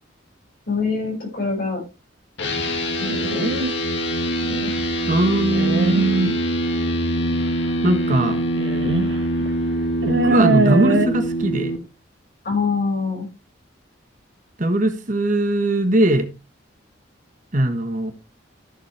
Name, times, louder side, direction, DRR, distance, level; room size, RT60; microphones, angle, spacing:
voice 1, 0.7-1.8 3.0-3.5 12.4-13.3, left 4 dB, 50° left, -1 dB, 6.4 m, -24 dB
sound 1, 2.4-11.8, equal, 65° left, 2.3 m, -24 dB
sound 2, 3.0-3.8 4.4-4.9 5.5-6.1 7.3-7.4 8.6-9.1 9.5-9.6 10.0-11.1, right 3 dB, 70° right, 1.3 m, -22 dB
voice 2, 5.1-6.4 7.8-8.4 10.0-11.7 14.6-16.3 17.5-18.1, right 1 dB, 40° right, 7 dB, 1.4 m, -20 dB
14.0 x 7.4 x 3.4 m, 0.27 s
head